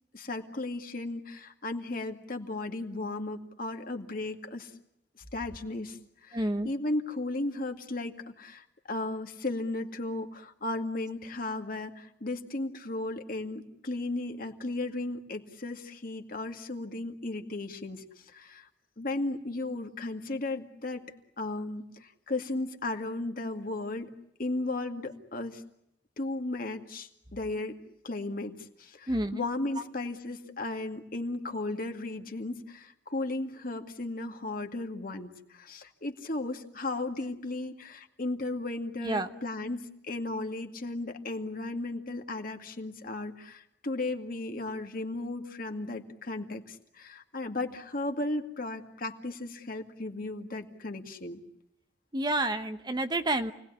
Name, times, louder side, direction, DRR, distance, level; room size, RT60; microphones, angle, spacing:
voice 1, 0.1-4.7 5.3-18.7 19.0-21.0 21.4-24.1 24.4-25.6 26.2-51.4, left 2 dB, 50° left, 5 dB, 2.2 m, -35 dB
voice 2, 6.3-6.7 29.1-29.4 39.0-39.3 52.1-53.5, right 1 dB, 25° right, 8 dB, 1.0 m, -29 dB
28.5 x 19.5 x 9.8 m, 0.81 s
head